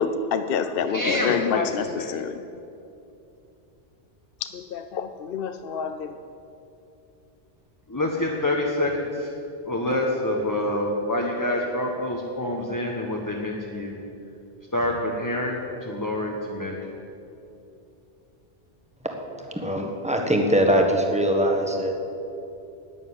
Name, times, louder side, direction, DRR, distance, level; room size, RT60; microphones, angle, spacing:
voice 1, 0.0-2.3 4.4-6.1, left 6 dB, 60° left, 9 dB, 0.7 m, -27 dB
voice 2, 0.9-2.1 7.9-9.3 9.6-14.0 14.7-16.8, left 1 dB, 15° left, -1 dB, 1.1 m, -27 dB
voice 3, 19.4-22.1, equal, 5° right, 2 dB, 1.5 m, -22 dB
11.0 x 9.3 x 9.5 m, 2.8 s
omnidirectional pair, 1.2 m